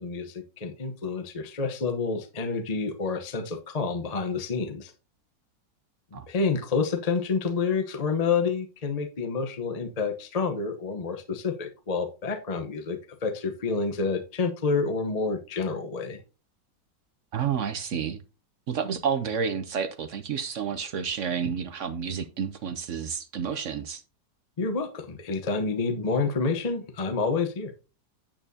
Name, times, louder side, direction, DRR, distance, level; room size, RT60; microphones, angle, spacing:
voice 1, 0.0-4.9 6.1-16.2 24.6-27.7, left 4 dB, 30° left, 0.7 m, -28 dB
voice 2, 17.3-18.2 18.7-24.0, right 7 dB, 65° right, 0.8 m, -30 dB
8.8 x 8.7 x 2.7 m
omnidirectional pair, 1.9 m